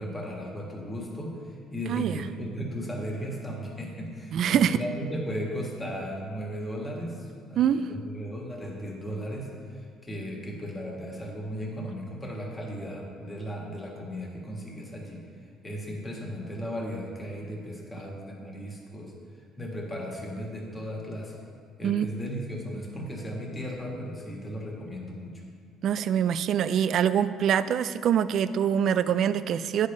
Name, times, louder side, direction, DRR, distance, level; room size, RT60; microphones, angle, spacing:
voice 1, 0.0-15.2 15.6-19.1 19.6-21.3 21.8-25.3, equal, 15° left, -1 dB, 1.5 m, -36 dB
voice 2, 1.9-2.2 4.3-4.8 7.6-7.9 21.8-22.1 25.8-29.9, right 9 dB, 55° right, 13 dB, 0.3 m, -24 dB
9.5 x 5.2 x 5.2 m, 2.1 s
cardioid pair, 140°, 0 cm